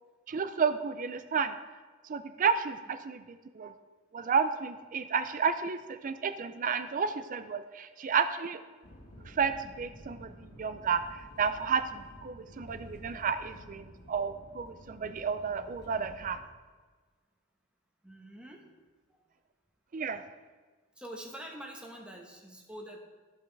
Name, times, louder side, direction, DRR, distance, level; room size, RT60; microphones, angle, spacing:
voice 1, 0.3-1.6 2.0-3.7 4.1-8.6 9.2-16.4 19.9-20.2, right 6 dB, 40° right, 11 dB, 0.4 m, -32 dB
sound 1, 8.8-16.4, equal, 50° left, 1.8 m, -51 dB
voice 2, 18.0-18.8 21.0-23.0, right 1 dB, 5° right, 0 dB, 1.2 m, -45 dB
14.0 x 5.4 x 3.4 m, 1.4 s
head